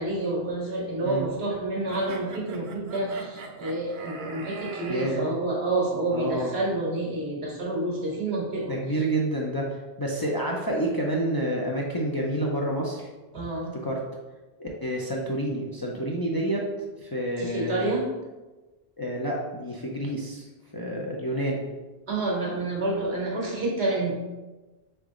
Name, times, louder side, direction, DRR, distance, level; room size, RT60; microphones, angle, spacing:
voice 1, 0.0-8.8 13.3-13.8 17.4-18.1 22.1-24.2, right 2 dB, 90° right, -3 dB, 1.5 m, -28 dB
sound 1, 1.9-5.1, right 4 dB, 55° right, 0.7 m, -40 dB
voice 2, 4.9-5.3 6.1-6.6 8.6-13.1 13.7-14.0 14.6-16.6 17.0-17.9 19.0-21.6, right 1 dB, 35° left, -2 dB, 0.4 m, -29 dB
3.9 x 3.4 x 3.7 m, 1.2 s
omnidirectional pair, 1.1 m